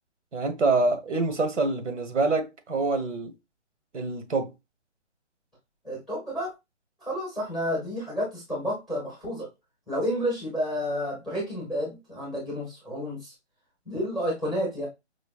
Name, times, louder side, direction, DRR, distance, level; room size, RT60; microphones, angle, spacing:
voice 1, 0.3-3.3 3.9-4.5, right 3 dB, 85° right, 1.1 m, -26 dB
voice 2, 5.8-6.5 7.0-9.5 9.9-13.3 13.9-14.9, equal, ahead, 0.8 m, -30 dB
5.0 x 2.2 x 2.3 m
hypercardioid pair, 160°, 35 cm